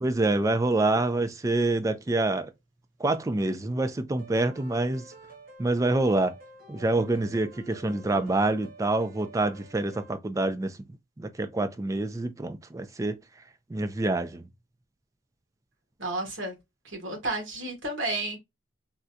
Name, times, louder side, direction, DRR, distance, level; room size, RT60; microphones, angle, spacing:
voice 1, 0.0-2.5 3.0-5.1 5.6-6.3 6.7-10.8 11.2-13.2 13.7-14.5, right 2 dB, 15° right, 0.3 m, -26 dB
sound 1, 4.2-10.1, right 2 dB, 50° right, 0.8 m, -49 dB
voice 2, 16.0-16.5 16.8-18.4, right 2 dB, 85° right, 1.2 m, -32 dB
3.6 x 2.2 x 2.6 m
head